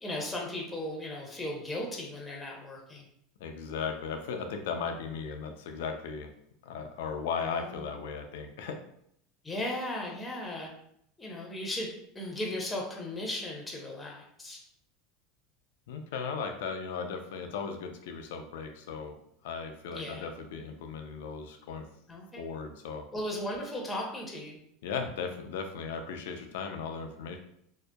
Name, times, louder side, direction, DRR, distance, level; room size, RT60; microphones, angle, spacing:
voice 1, 0.0-3.1 7.4-7.9 9.4-10.7 11.2-11.9 12.1-14.6 19.9-20.3 22.1-22.4 23.1-24.6, left 1 dB, 10° left, -2 dB, 0.7 m, -36 dB
voice 2, 3.4-6.3 6.6-8.8 15.9-19.1 19.4-21.8 22.4-23.0 24.8-27.4, left 5 dB, 75° left, 5 dB, 0.4 m, -36 dB
2.6 x 2.1 x 2.2 m, 0.70 s
hypercardioid pair, 100°, 0 cm